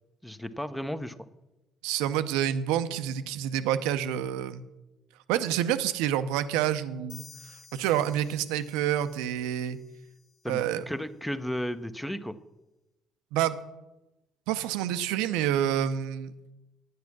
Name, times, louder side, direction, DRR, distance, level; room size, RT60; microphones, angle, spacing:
voice 1, 0.2-1.1 10.4-12.4, equal, 5° left, 12 dB, 0.8 m, -34 dB
voice 2, 1.8-4.6 5.3-7.2 7.7-9.8 10.5-10.8 13.3-13.6 14.5-16.3, right 11 dB, 75° right, 11 dB, 0.6 m, -28 dB
sound 1, 7.1-10.7, left 5 dB, 60° left, 1.9 m, -54 dB
9.4 x 9.4 x 6.0 m, 0.99 s
hypercardioid pair, 55°, 0 cm